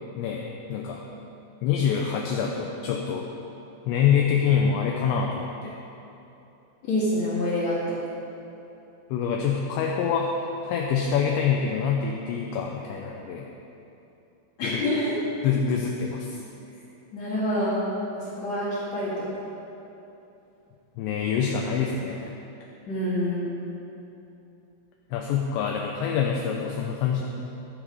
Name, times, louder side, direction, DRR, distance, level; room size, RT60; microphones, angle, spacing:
voice 1, 0.2-1.0 1.6-3.3 3.9-5.8 9.1-13.5 14.6-14.8 15.4-16.4 21.0-22.4 25.1-27.2, left 7 dB, 80° left, 1 dB, 2.6 m, -26 dB
voice 2, 6.8-7.8 14.6-15.1 17.1-17.8 18.1-19.3 22.9-23.5, left 1 dB, 50° left, -10 dB, 2.2 m, -27 dB
15.5 x 7.4 x 5.3 m, 2.9 s
omnidirectional pair, 5.8 m